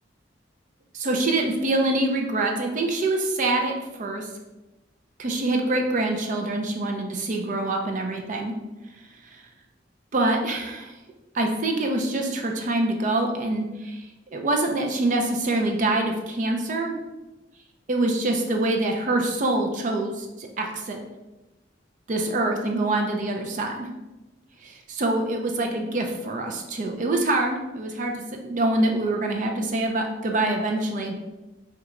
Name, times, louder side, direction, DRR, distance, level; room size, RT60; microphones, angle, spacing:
voice 1, 0.9-3.7 4.0-4.3 5.2-8.5 9.3-9.4 10.1-10.9 11.3-14.1 14.3-16.9 17.9-21.0 22.1-23.9 24.6-31.1, right 2 dB, 45° right, 3 dB, 0.4 m, -25 dB
3.0 x 2.2 x 3.6 m, 1.1 s
head